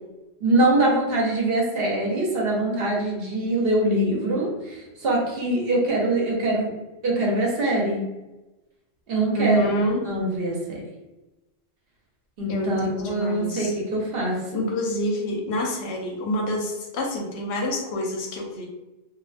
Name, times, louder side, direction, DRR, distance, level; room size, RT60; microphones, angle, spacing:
voice 1, 0.4-6.7 7.0-8.0 9.1-9.7 10.0-10.8 12.4-14.6, right 1 dB, 65° right, -3 dB, 0.9 m, -23 dB
voice 2, 9.3-10.0 12.5-13.7 14.5-18.7, equal, 80° left, 0 dB, 0.8 m, -27 dB
2.3 x 2.2 x 2.4 m, 1.1 s
omnidirectional pair, 1.1 m